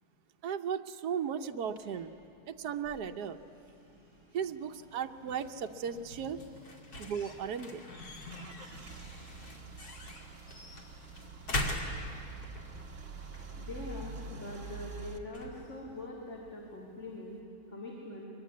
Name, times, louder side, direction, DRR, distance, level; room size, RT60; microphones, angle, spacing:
voice 1, 0.4-2.1 2.5-3.4 4.3-6.4 7.0-7.9, right 7 dB, 70° right, 6 dB, 1.4 m, -36 dB
Printer, 1.5-17.2, equal, 15° right, 6.1 m, -57 dB
sound 1, 4.6-17.4, left 1 dB, 65° left, 2.9 m, -43 dB
Car / Engine starting / Idling, 7.7-15.2, right 4 dB, 50° right, 1.8 m, -46 dB
voice 2, 13.6-17.4 17.7-18.3, left 2 dB, 45° left, -2 dB, 3.0 m, -43 dB
23.5 x 22.0 x 9.5 m, 2.6 s
omnidirectional pair, 1.8 m